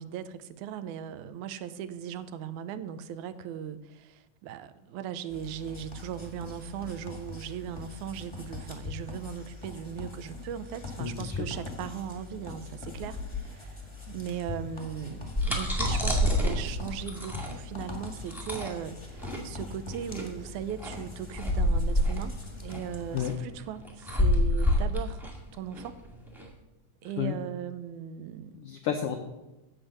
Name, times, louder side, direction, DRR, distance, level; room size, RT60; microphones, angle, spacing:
voice 1, 0.0-26.0 27.0-28.7, right 9 dB, 85° right, 13 dB, 2.0 m, -38 dB
sound 1, 5.3-23.3, left 4 dB, 20° left, 0.8 m, -42 dB
voice 2, 11.0-11.5 23.1-23.3 27.0-27.4 28.5-29.2, left 9 dB, 85° left, 5 dB, 1.2 m, -31 dB
sound 2, 15.0-26.5, left 1 dB, ahead, 1.1 m, -28 dB
8.9 x 7.8 x 6.6 m, 1.0 s
omnidirectional pair, 3.5 m